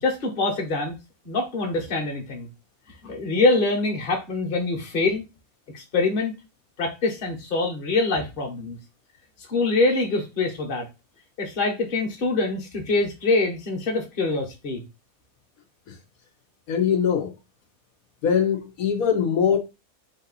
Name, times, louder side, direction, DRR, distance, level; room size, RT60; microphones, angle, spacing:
voice 1, 0.0-1.0 1.2-2.5 3.0-5.2 5.7-6.3 6.8-8.8 9.5-10.9 11.4-14.9, left 3 dB, 40° left, 1.2 m, -24 dB
voice 2, 16.7-17.3 18.2-19.6, left 7 dB, 80° left, 1.2 m, -22 dB
4.5 x 2.7 x 4.0 m
omnidirectional pair, 1.5 m